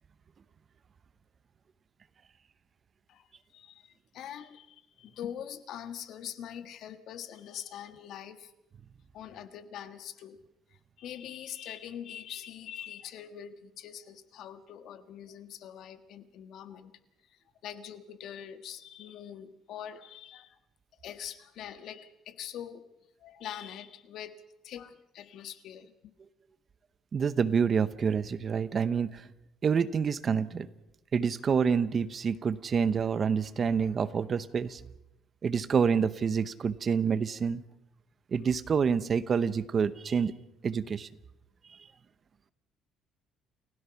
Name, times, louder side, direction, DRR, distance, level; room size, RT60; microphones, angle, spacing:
voice 1, 3.1-8.5 9.1-10.4 10.7-16.9 17.2-20.6 20.9-22.9 23.2-26.1, left 10 dB, 60° left, 10 dB, 1.5 m, -44 dB
voice 2, 27.1-29.3 29.6-30.7 31.1-34.8 35.4-37.6 38.3-40.3 40.6-41.1, right 6 dB, 35° right, 16 dB, 0.8 m, -27 dB
29.5 x 16.5 x 5.8 m, 0.88 s
cardioid pair, 140°, 0 cm